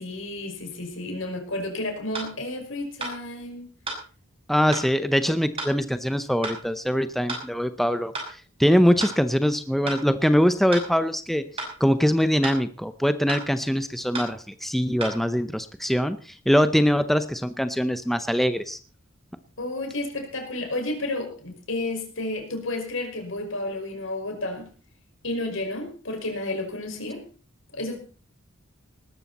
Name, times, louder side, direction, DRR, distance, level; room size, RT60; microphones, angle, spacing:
voice 1, 0.0-3.7 19.6-24.7 25.2-27.2 27.7-28.0, left 2 dB, 75° left, 4 dB, 5.4 m, -31 dB
sound 1, 2.1-2.3 3.0-3.2 3.9-4.0 4.7-4.9 5.6-5.7 6.4-6.6 7.3-7.5 8.1-8.3 9.0-9.2 9.9-10.0 10.7-10.9 11.6-11.7 12.4-12.6 13.3-13.5 14.1-14.3 15.0-15.2, right 2 dB, 30° right, 6.1 m, -32 dB
voice 2, 4.5-11.4 11.8-18.8, equal, ahead, 10 dB, 0.6 m, -23 dB
19.5 x 13.0 x 4.2 m, 0.38 s
head